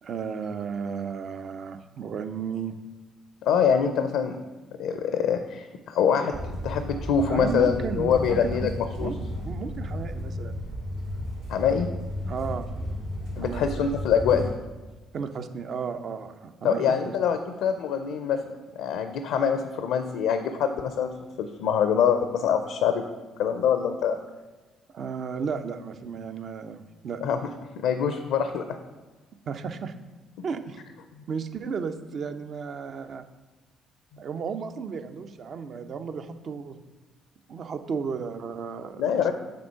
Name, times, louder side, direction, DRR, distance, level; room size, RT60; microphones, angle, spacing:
voice 1, 0.0-2.8 7.2-10.6 12.3-12.7 13.4-13.9 14.3-14.4 15.1-17.1 24.9-27.2 29.5-29.9 30.4-30.8 31.3-33.2 34.2-36.8 37.5-39.3, right 6 dB, 55° right, 8 dB, 0.6 m, -34 dB
voice 2, 3.4-4.4 4.8-8.7 9.0-9.1 11.5-11.9 13.4-14.5 16.6-18.4 18.8-21.1 21.4-23.0 23.4-24.2 27.2-27.4 27.8-28.6 39.0-39.3, left 7 dB, 70° left, 8 dB, 0.4 m, -24 dB
sound 1, 6.3-14.5, equal, 85° right, 2.5 m, -34 dB
7.5 x 3.8 x 5.7 m, 1.2 s
hypercardioid pair, 50°, 0 cm